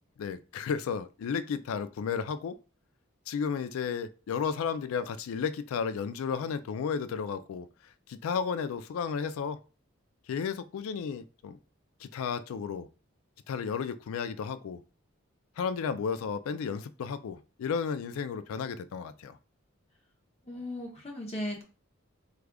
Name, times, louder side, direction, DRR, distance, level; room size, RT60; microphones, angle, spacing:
voice 1, 0.2-2.6 3.3-7.7 8.1-9.6 10.3-11.6 12.0-12.9 13.5-14.8 15.6-19.4, left 6 dB, 85° left, 0.3 m, -33 dB
voice 2, 20.4-21.6, left 1 dB, 30° left, 0.6 m, -36 dB
4.8 x 2.4 x 2.2 m
head